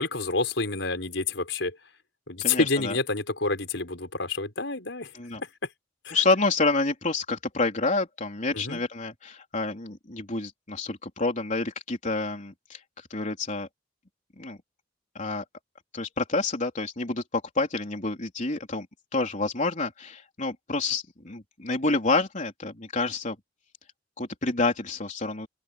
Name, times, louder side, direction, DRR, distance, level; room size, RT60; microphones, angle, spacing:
voice 1, 0.0-1.7 2.3-5.1 6.0-6.2 8.5-8.8, left 3 dB, 75° left, 5.3 m, -28 dB
voice 2, 2.4-3.0 5.1-5.4 6.1-12.8 13.1-13.7 14.4-14.6 15.2-15.4 15.9-18.9 19.1-23.4 24.2-25.5, left 3 dB, 45° left, 3.7 m, -28 dB
open air
head